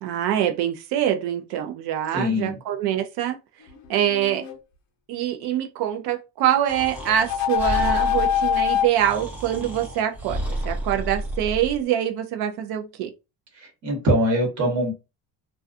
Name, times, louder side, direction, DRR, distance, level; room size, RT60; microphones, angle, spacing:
voice 1, 0.0-3.4 3.9-4.5 5.1-13.1, right 10 dB, 70° right, 0.5 m, -24 dB
voice 2, 2.1-2.5 13.8-14.9, equal, 45° right, 1.1 m, -22 dB
sound 1, 3.7-4.6 7.0-8.9, left 10 dB, 45° left, 0.6 m, -24 dB
Breathing, 6.7-11.8, right 1 dB, 5° right, 0.5 m, -32 dB
2.4 x 2.2 x 2.5 m
cardioid pair, 160°, 41 cm